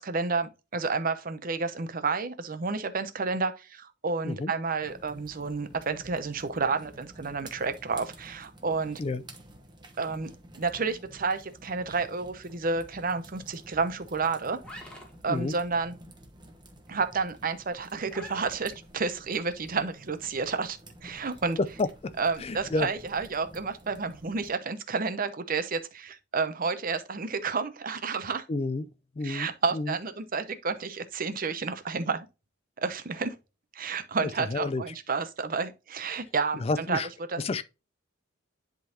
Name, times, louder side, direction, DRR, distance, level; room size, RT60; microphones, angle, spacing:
voice 1, 0.0-9.0 10.0-14.6 15.2-15.9 16.9-21.6 22.2-28.4 29.2-32.3 32.8-33.4 33.7-37.0 37.3-37.4, right 4 dB, 45° right, 0.8 m, -30 dB
sound 1, 4.8-24.5, right 1 dB, 20° right, 1.0 m, -51 dB
sound 2, 14.6-24.3, equal, 5° left, 1.5 m, -53 dB
voice 2, 21.6-22.9 28.5-28.9 29.2-30.0 34.2-34.9 36.1-36.2 36.5-37.1 37.4-37.6, left 3 dB, 30° left, 0.4 m, -30 dB
10.5 x 3.8 x 2.8 m
head